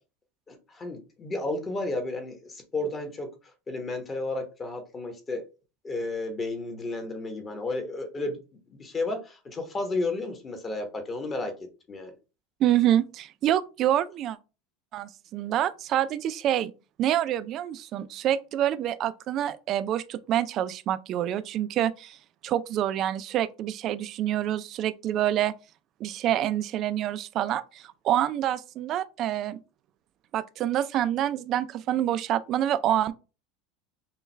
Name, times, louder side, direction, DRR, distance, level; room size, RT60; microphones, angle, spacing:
voice 1, 0.5-3.3 3.7-5.5 5.8-11.5 11.9-12.1, left 2 dB, 20° left, 0.9 m, -32 dB
voice 2, 12.6-14.4 14.9-16.7 17.0-22.2 22.4-25.5 26.0-29.6 30.3-33.1, right 11 dB, 40° right, 0.3 m, -27 dB
5.5 x 2.3 x 3.2 m
supercardioid pair, 140°, 0 cm